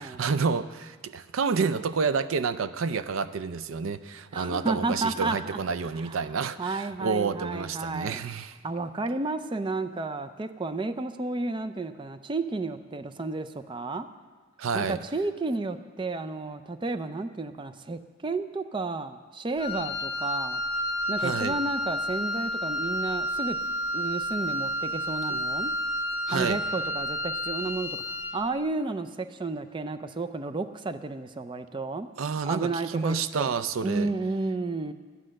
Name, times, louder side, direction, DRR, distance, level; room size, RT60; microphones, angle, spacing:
voice 1, 0.0-8.6 14.6-15.0 21.2-21.6 25.3-25.4 26.3-26.6 32.2-34.1, right 5 dB, 90° right, 14 dB, 0.5 m, -29 dB
voice 2, 4.3-5.6 6.0-6.2 6.6-8.2 8.6-14.1 14.7-20.6 21.1-23.6 23.9-25.7 26.3-28.0 28.3-32.1 32.4-33.5 33.8-34.9, right 3 dB, 25° right, 10 dB, 0.4 m, -32 dB
Wind instrument woodwind instrument, 19.6-28.5, equal, 30° left, 1.0 m, -30 dB
12.5 x 9.9 x 6.4 m, 1.4 s
head